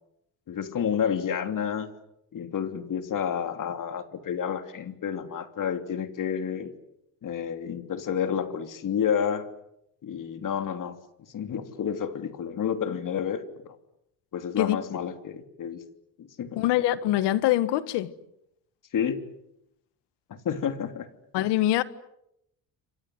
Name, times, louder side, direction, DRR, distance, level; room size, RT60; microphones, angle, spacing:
voice 1, 0.5-1.9 2.3-6.7 7.2-9.5 10.0-10.9 11.3-13.8 14.3-15.8 16.2-16.6 18.9-19.2 20.3-21.1, left 8 dB, 50° left, 3.2 m, -30 dB
voice 2, 16.6-18.1 21.3-21.8, left 14 dB, 90° left, 1.6 m, -24 dB
29.0 x 25.0 x 7.9 m
cardioid pair, 115°, 40 cm